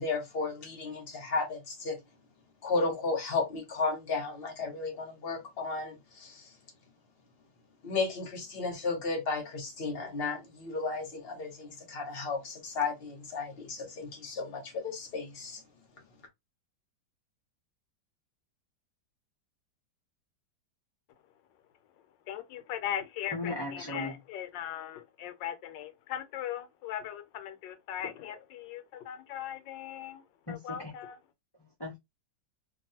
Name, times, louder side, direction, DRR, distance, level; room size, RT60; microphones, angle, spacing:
voice 1, 0.0-2.0 2.6-6.5 7.8-15.6, left 3 dB, 45° left, 0.9 m, -34 dB
voice 2, 22.3-31.2, left 10 dB, 80° left, 1.3 m, -39 dB
voice 3, 23.3-24.2 30.5-30.9 31.6-32.0, left 2 dB, 25° left, 0.5 m, -37 dB
2.9 x 2.6 x 2.7 m
omnidirectional pair, 2.0 m